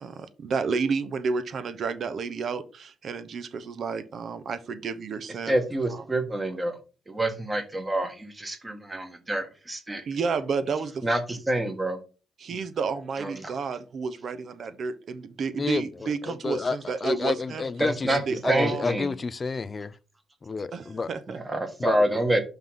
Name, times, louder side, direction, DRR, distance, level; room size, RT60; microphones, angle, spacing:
voice 1, 0.0-5.5 5.9-6.0 10.1-11.0 12.4-17.6 18.1-18.8 20.7-21.4, right 5 dB, 55° right, 0.8 m, -31 dB
voice 2, 5.5-6.8 7.1-10.0 11.0-12.0 13.2-13.5 17.8-18.2 18.5-19.1 21.3-22.4, right 1 dB, 20° right, 1.5 m, -27 dB
voice 3, 15.6-20.0 20.4-21.1 21.8-22.0, left 4 dB, 35° left, 0.5 m, -30 dB
5.7 x 3.7 x 5.7 m
cardioid pair, 90°, 0 cm